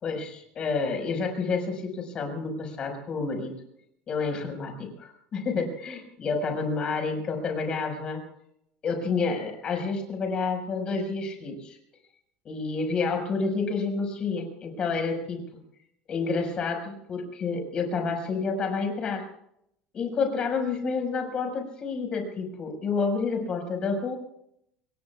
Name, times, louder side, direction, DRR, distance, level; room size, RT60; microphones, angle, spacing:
voice 1, 0.0-3.6 4.1-8.2 8.8-11.8 12.4-15.4 16.1-19.3 19.9-24.2, left 4 dB, 30° left, 4 dB, 5.4 m, -29 dB
27.0 x 22.0 x 2.4 m, 0.74 s
cardioid pair, 165°, 3 cm